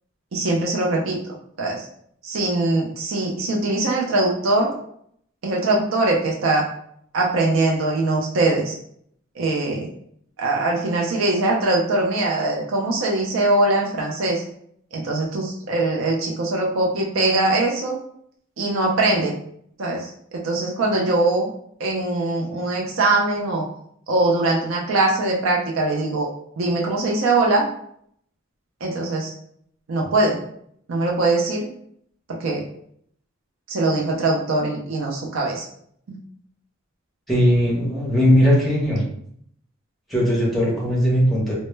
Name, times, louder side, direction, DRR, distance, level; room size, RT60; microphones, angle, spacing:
voice 1, 0.3-1.2 1.6-1.9 2.2-4.8 5.4-6.7 7.1-8.8 9.4-9.9 10.4-14.4 14.9-18.0 18.6-19.3 19.8-21.5 21.8-23.7 24.1-26.3 26.6-27.7 28.8-29.3 29.9-30.4 30.9-31.7 32.3-32.7 33.7-35.7 36.1-36.2, right 2 dB, 90° right, -1 dB, 0.5 m, -22 dB
voice 2, 37.3-39.0 40.1-41.5, equal, ahead, -5 dB, 0.8 m, -18 dB
2.1 x 2.0 x 3.1 m, 0.67 s
head